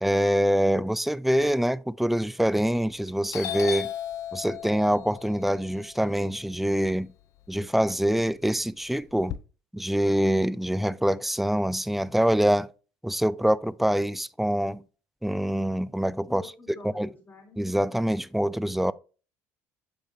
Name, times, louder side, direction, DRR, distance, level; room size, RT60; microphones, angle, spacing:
voice 1, 0.0-3.9 4.3-7.1 7.5-9.3 9.7-12.7 13.0-14.8 15.2-16.4 17.0-17.1 17.6-18.9, equal, 5° right, 0.3 m, -25 dB
Doorbell, 2.7-3.0 3.3-7.5 7.8-9.4, left 11 dB, 60° left, 0.6 m, -36 dB
voice 2, 16.3-17.6, left 3 dB, 30° left, 3.5 m, -47 dB
8.8 x 5.8 x 2.7 m
cardioid pair, 110°, 6 cm